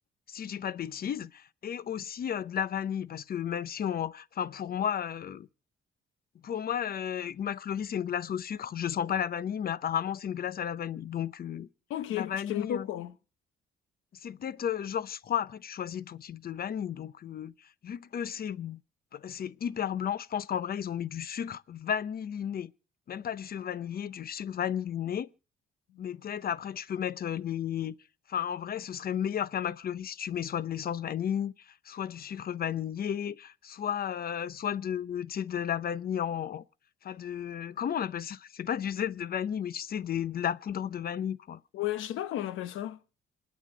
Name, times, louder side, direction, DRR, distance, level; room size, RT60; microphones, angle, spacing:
voice 1, 0.3-5.5 6.4-11.7 12.1-12.9 14.1-18.8 19.1-22.7 23.1-25.3 26.0-27.9 28.3-36.6 37.0-41.6, left 9 dB, 50° left, 0.8 m, -33 dB
voice 2, 11.9-13.1 41.7-43.0, left 12 dB, 85° left, 0.9 m, -33 dB
27.0 x 9.5 x 4.0 m
cardioid pair, 90°, 20 cm